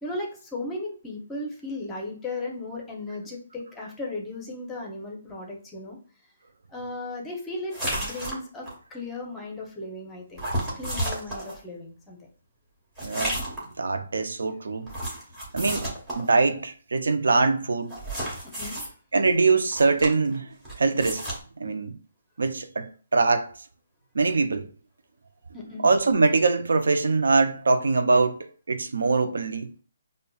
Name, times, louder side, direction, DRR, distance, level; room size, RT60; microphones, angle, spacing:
voice 1, 0.0-6.0 6.7-10.4 10.7-12.2 18.6-18.8 25.5-25.8, left 2 dB, 10° left, 0.7 m, -36 dB
sound 1, 7.7-8.8 10.4-11.6 13.0-13.7 14.9-16.3 17.9-18.9 19.7-20.4 20.6-21.4, right 1 dB, 10° right, 1.0 m, -32 dB
voice 2, 13.0-13.4 13.8-14.9 15.5-18.0 19.1-21.3 21.6-22.0 22.4-23.5 24.1-24.7 25.8-29.7, right 3 dB, 85° right, 0.4 m, -23 dB
5.1 x 2.2 x 2.3 m
hypercardioid pair, 165°, 0 cm